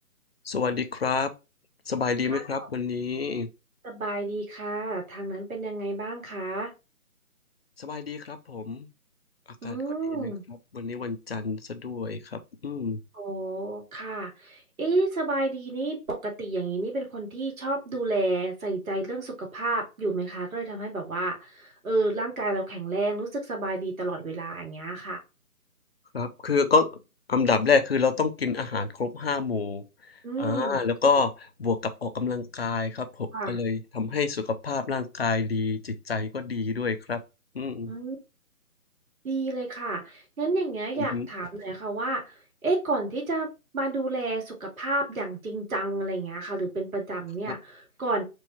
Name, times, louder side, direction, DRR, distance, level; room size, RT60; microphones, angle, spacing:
voice 1, 0.5-1.3 1.9-3.5 7.8-8.9 9.6-9.8 10.1-13.0 26.1-26.9 27.3-29.8 30.4-37.2 37.5-37.9 40.9-41.3 47.5-47.6, left 4 dB, 45° left, 0.6 m, -27 dB
voice 2, 2.3-2.7 3.8-6.7 9.6-10.4 13.1-25.2 30.2-30.8 33.3-33.6 37.9-38.2 39.2-42.3 42.6-43.5 43.7-48.2, right 2 dB, 65° right, 2.3 m, -30 dB
4.6 x 2.6 x 4.3 m
hypercardioid pair, 165°, 44 cm